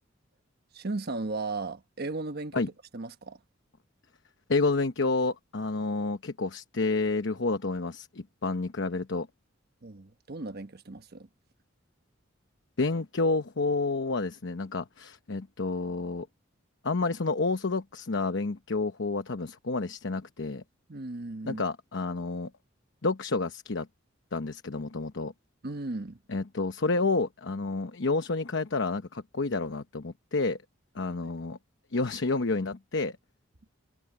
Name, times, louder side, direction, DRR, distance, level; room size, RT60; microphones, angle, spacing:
voice 1, 0.7-2.6 2.9-3.4 9.8-11.3 20.9-21.6 25.6-26.2, right 3 dB, 55° right, 1.2 m, -36 dB
voice 2, 4.5-9.3 12.8-16.3 16.8-20.6 21.5-22.5 23.0-23.9 24.3-25.3 26.3-30.6 30.9-31.6 31.9-33.2, left 3 dB, 65° left, 0.9 m, -29 dB
head